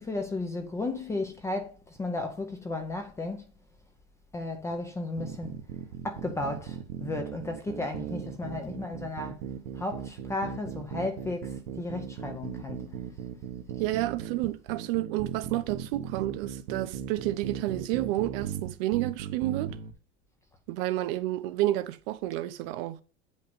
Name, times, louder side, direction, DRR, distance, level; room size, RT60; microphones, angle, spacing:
voice 1, 0.0-3.4 4.3-5.6 6.0-9.4 9.8-13.0, left 2 dB, 10° left, 0.6 m, -34 dB
sound 1, 5.2-19.9, right 9 dB, 85° right, 1.5 m, -38 dB
voice 2, 13.8-19.8 20.7-23.0, right 16 dB, 60° right, 0.9 m, -30 dB
9.1 x 5.4 x 5.4 m
cardioid pair, 175°, 32 cm